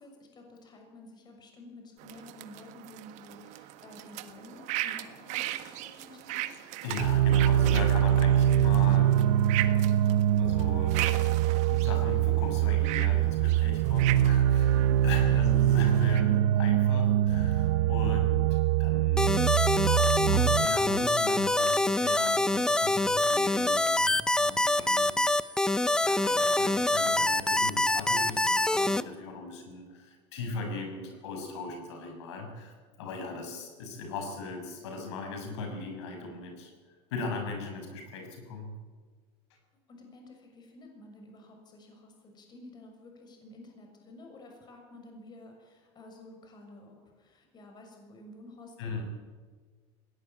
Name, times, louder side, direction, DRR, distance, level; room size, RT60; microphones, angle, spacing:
voice 1, 0.0-6.6 14.7-15.4 39.9-49.0, left 2 dB, 30° left, 3 dB, 6.6 m, -51 dB
sound 1, 2.0-16.2, right 15 dB, 60° right, 1.7 m, -39 dB
voice 2, 6.8-9.3 9.7-11.0 11.3-25.6 26.0-36.7 37.1-38.7 48.8-49.0, left 3 dB, 85° left, 4 dB, 6.3 m, -38 dB
sound 2, 7.0-20.6, right 12 dB, 85° right, 0.9 m, -24 dB
sound 3, 19.2-29.0, left 2 dB, 5° left, 0.7 m, -25 dB
21.0 x 17.5 x 9.1 m, 1.5 s
supercardioid pair, 125°, 14 cm